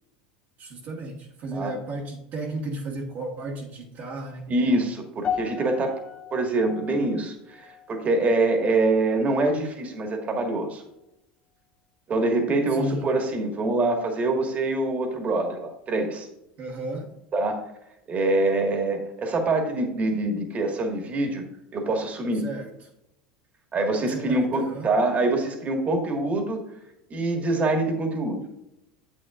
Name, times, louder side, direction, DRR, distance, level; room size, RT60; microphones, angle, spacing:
voice 1, 0.6-4.5 12.7-13.1 16.6-17.1 22.3-22.9 24.1-24.9, right 2 dB, 50° right, -2 dB, 1.5 m, -34 dB
voice 2, 4.5-6.0 6.3-10.8 12.1-16.3 17.3-17.6 18.1-21.4 21.7-22.4 23.7-26.6 27.1-28.4, right 2 dB, 35° right, 4 dB, 1.7 m, -25 dB
sound 1, 5.2-9.6 9.9-10.3 10.9-11.0, left 8 dB, 30° left, 1.2 m, -37 dB
9.5 x 7.7 x 2.5 m, 0.84 s
supercardioid pair, 100°, 5 cm